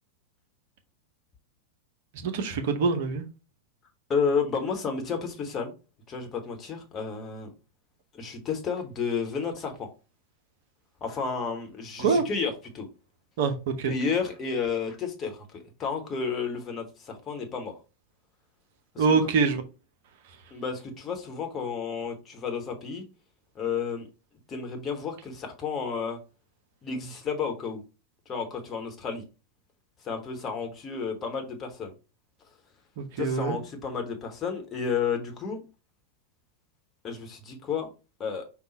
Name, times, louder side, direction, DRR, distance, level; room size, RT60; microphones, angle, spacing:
voice 1, 2.1-3.2 12.0-12.2 13.4-13.9 19.0-19.6 33.0-33.6, right 5 dB, 50° right, 0.7 m, -25 dB
voice 2, 4.1-5.7 6.1-7.5 8.1-9.9 11.0-12.9 13.8-17.8 18.9-19.0 20.5-23.0 23.5-24.1 24.5-26.2 26.8-27.8 28.3-29.2 30.0-31.9 33.2-35.6 37.0-37.9 38.2-38.4, left 5 dB, 25° left, 1.2 m, -31 dB
5.4 x 2.3 x 4.0 m
figure-of-eight pair, 90°, 0 cm